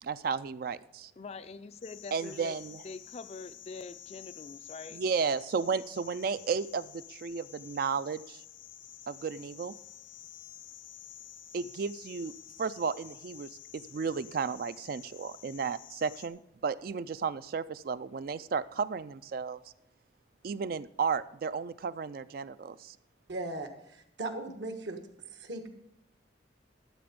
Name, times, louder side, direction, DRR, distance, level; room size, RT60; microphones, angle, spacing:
voice 1, 0.0-1.1 2.1-2.8 4.9-8.4 9.1-9.7 11.5-12.3 12.6-19.6 20.4-23.0, right 5 dB, 50° right, 0.3 m, -33 dB
voice 2, 1.2-2.6 2.8-5.0, left 4 dB, 35° left, 0.4 m, -44 dB
sound 1, 1.8-16.3, left 10 dB, 90° left, 0.8 m, -50 dB
voice 3, 23.3-25.0 25.3-25.7, right 2 dB, 70° right, 1.3 m, -38 dB
12.0 x 7.8 x 5.2 m
head